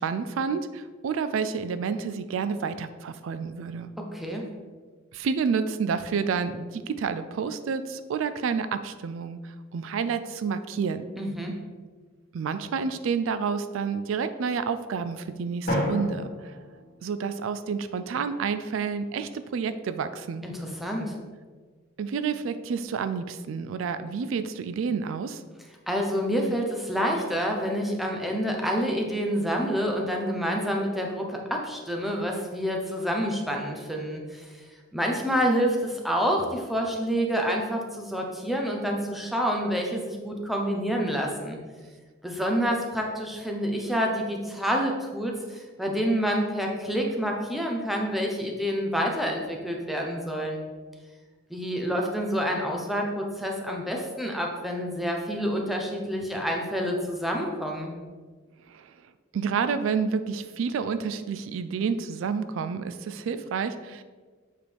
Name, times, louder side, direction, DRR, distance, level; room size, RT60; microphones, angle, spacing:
voice 1, 0.0-3.9 5.1-11.0 12.3-16.6 17.0-20.4 22.0-25.4 58.7-58.9 59.3-64.0, right 5 dB, 70° right, 12 dB, 0.3 m, -29 dB
voice 2, 4.1-4.4 11.2-11.6 20.4-21.2 25.9-34.6 34.9-41.6 42.2-50.6 51.5-57.9, equal, ahead, 0 dB, 0.7 m, -28 dB
Drum, 15.7-17.6, equal, 50° left, 1.9 m, -31 dB
7.3 x 4.6 x 3.4 m, 1.5 s
head